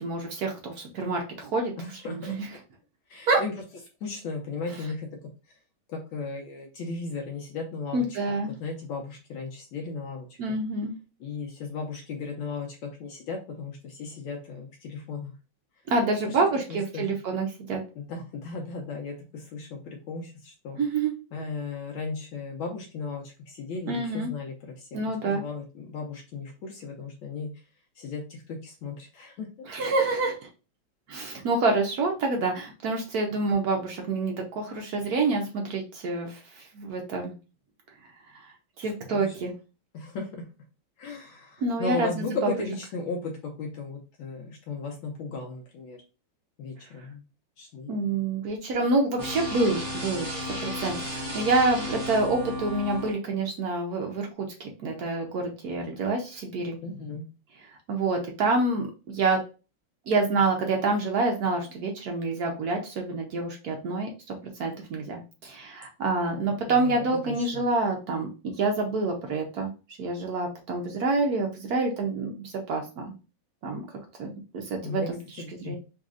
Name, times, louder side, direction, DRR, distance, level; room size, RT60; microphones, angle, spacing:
voice 1, 0.0-1.7 2.1-2.5 3.3-3.4 7.9-8.5 10.4-10.9 15.9-17.8 20.8-21.1 23.9-24.3 24.9-25.4 29.7-30.5 31.1-37.3 38.3-38.4 38.8-39.5 41.6-42.5 47.9-50.3 50.6-56.8 57.9-59.4 60.1-69.7 70.0-73.1 73.6-73.8 74.2-75.2 75.6-75.8, right 3 dB, 75° right, 1 dB, 0.8 m, -27 dB
voice 2, 1.8-2.4 3.1-3.5 4.0-5.1 5.5-5.6 5.9-8.1 8.6-10.4 11.2-15.3 16.2-17.1 17.9-20.8 21.3-25.0 25.2-27.6 28.0-29.5 39.1-39.4 39.9-40.5 41.0-46.0 46.6-47.2 47.6-47.9 56.8-57.3 66.4-67.6 74.8-75.8, left 4 dB, 75° left, 2 dB, 1.4 m, -36 dB
sound 1, 49.2-53.1, left 1 dB, 30° right, 0.7 m, -33 dB
4.0 x 2.8 x 2.4 m, 0.32 s
omnidirectional pair, 2.4 m